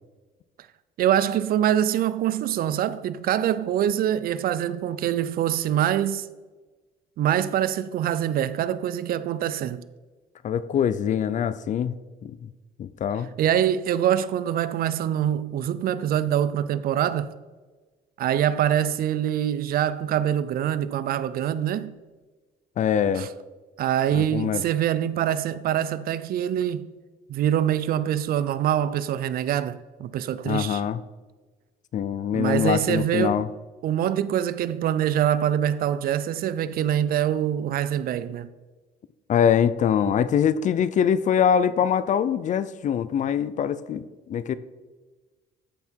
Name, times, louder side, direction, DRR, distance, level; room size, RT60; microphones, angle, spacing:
voice 1, 1.0-6.3 7.2-9.8 13.4-17.3 18.2-22.0 23.2-23.3 23.8-26.9 27.3-30.8 32.3-33.4 33.8-38.5, right 10 dB, 60° right, 0.6 m, -24 dB
voice 2, 10.4-11.9 12.2-12.5 12.8-13.3 22.8-23.3 24.1-24.6 30.4-31.0 31.9-33.5 39.3-44.5, left 8 dB, 45° left, 0.5 m, -23 dB
13.5 x 5.8 x 4.5 m
cardioid pair, 110°, 17 cm